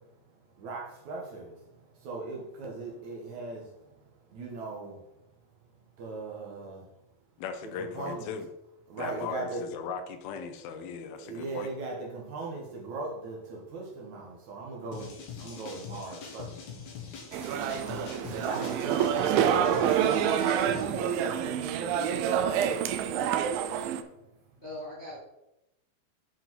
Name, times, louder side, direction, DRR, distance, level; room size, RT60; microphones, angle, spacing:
voice 1, 0.6-1.5 2.0-3.6 4.3-5.0 6.0-6.8 7.6-8.3 8.9-9.6 11.2-15.1 15.4-16.5 17.5-20.1 20.7-22.0 23.1-23.4, right 3 dB, 60° right, -1 dB, 2.4 m, -39 dB
voice 2, 7.4-8.5 9.0-11.7, left 6 dB, 85° left, 7 dB, 2.6 m, -38 dB
sound 1, 14.9-20.8, left 6 dB, 60° left, 2.4 m, -43 dB
sound 2, 17.3-24.0, right 9 dB, 85° right, 2.4 m, -27 dB
voice 3, 23.0-23.4 24.6-25.2, left 1 dB, 35° left, -6 dB, 1.1 m, -41 dB
7.7 x 5.4 x 4.6 m, 0.89 s
omnidirectional pair, 4.2 m